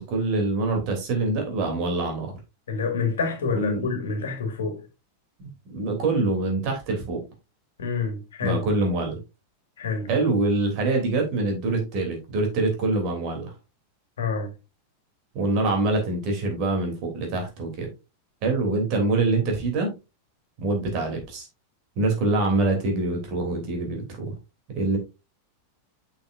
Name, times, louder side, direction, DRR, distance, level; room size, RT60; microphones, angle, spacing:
voice 1, 0.0-2.3 3.5-3.8 5.4-7.2 8.4-9.2 10.1-13.5 15.3-17.9 18.4-19.9 20.6-21.5 22.0-24.3 24.7-25.0, right 2 dB, 40° right, 3.1 m, -25 dB
voice 2, 2.7-4.8 7.8-8.7 9.8-10.1 14.2-14.5, left 4 dB, 65° left, 1.9 m, -27 dB
8.5 x 5.7 x 2.6 m
figure-of-eight pair, 90°, 0 cm